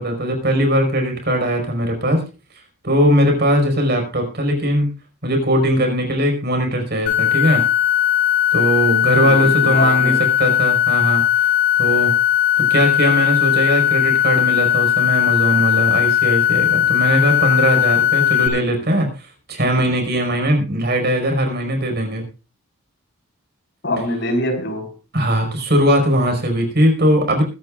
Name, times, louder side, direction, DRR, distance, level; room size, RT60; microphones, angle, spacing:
voice 1, 0.0-2.2 2.8-4.9 5.2-7.6 8.5-11.5 11.8-12.1 12.6-22.2 25.1-27.4, equal, 50° right, 5.4 m, -19 dB
sound 1, 7.1-18.5, left 11 dB, 70° left, 5.3 m, -17 dB
voice 2, 9.2-10.1 23.8-24.9, left 1 dB, 55° left, 4.7 m, -24 dB
23.0 x 11.5 x 2.5 m
head